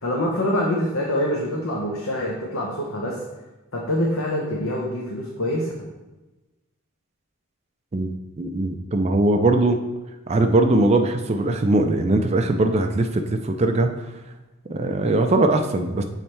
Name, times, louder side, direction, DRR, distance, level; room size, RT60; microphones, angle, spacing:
voice 1, 0.0-3.2 3.7-5.7, left 1 dB, 65° left, -2 dB, 0.8 m, -25 dB
voice 2, 7.9-9.8 10.3-13.9 14.7-16.0, right 2 dB, 30° right, 5 dB, 0.4 m, -20 dB
6.9 x 3.3 x 4.3 m, 1.1 s
head